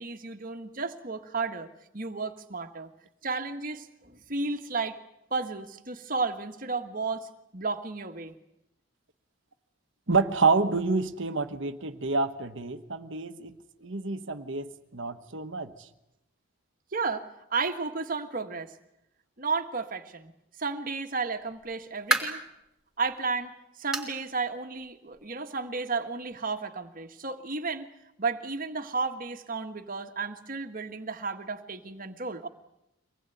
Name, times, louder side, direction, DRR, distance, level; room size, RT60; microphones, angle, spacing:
voice 1, 0.0-1.7 1.9-2.9 3.2-5.0 5.3-8.3 16.9-18.7 19.4-20.3 20.6-22.4 23.0-23.5 23.8-27.8 28.2-32.5, right 4 dB, 40° right, 6 dB, 1.6 m, -33 dB
voice 2, 10.1-13.6 13.8-15.7, right 4 dB, 60° right, 9 dB, 1.2 m, -28 dB
sound 1, 21.5-22.5 23.0-23.1 23.9-24.2 24.5-24.6 25.1-25.2 26.3-26.4, right 1 dB, 5° right, 3.4 m, -30 dB
24.5 x 19.5 x 9.3 m, 0.87 s
head